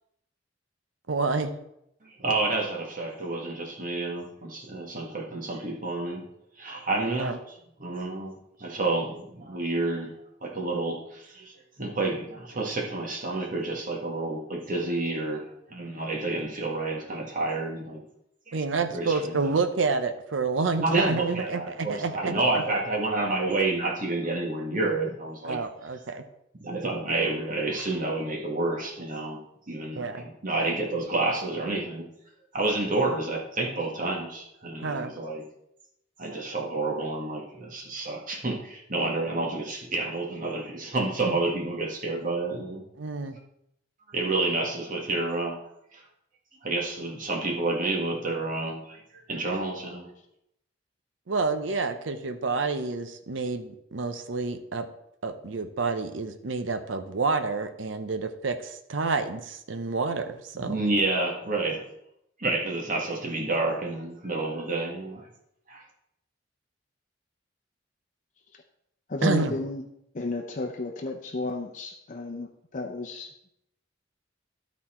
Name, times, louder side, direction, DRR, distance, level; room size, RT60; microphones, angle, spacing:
voice 1, 1.1-1.6 7.2-7.4 18.5-22.3 25.4-26.2 30.0-30.2 34.8-35.1 41.3-41.4 43.0-43.4 51.3-54.9 55.2-60.8 69.2-69.5, right 4 dB, 90° right, 8 dB, 0.7 m, -29 dB
voice 2, 2.2-6.2 6.6-7.3 7.8-8.3 8.6-10.1 10.4-18.0 18.5-18.6 18.9-19.4 20.8-25.6 26.6-29.4 29.7-32.1 32.5-35.4 36.2-42.8 44.1-45.6 45.9-46.0 46.6-49.0 49.3-50.1 60.5-61.8 62.4-65.3 65.7-65.8, right 2 dB, 45° right, 0 dB, 1.6 m, -29 dB
voice 3, 69.1-69.8 70.1-73.3, left 2 dB, 45° left, 1 dB, 0.7 m, -32 dB
12.0 x 4.2 x 4.3 m, 0.78 s
head